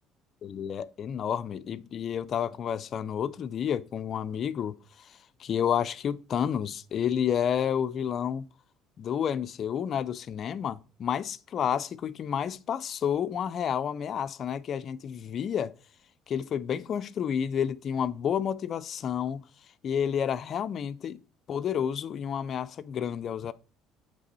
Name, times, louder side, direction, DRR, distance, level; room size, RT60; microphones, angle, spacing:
voice 1, 0.4-4.8 5.4-8.5 9.0-15.7 16.3-19.4 19.8-21.2 21.5-23.5, left 8 dB, 45° left, 0.4 m, -30 dB
8.1 x 3.3 x 4.0 m
cardioid pair, 125°, 0 cm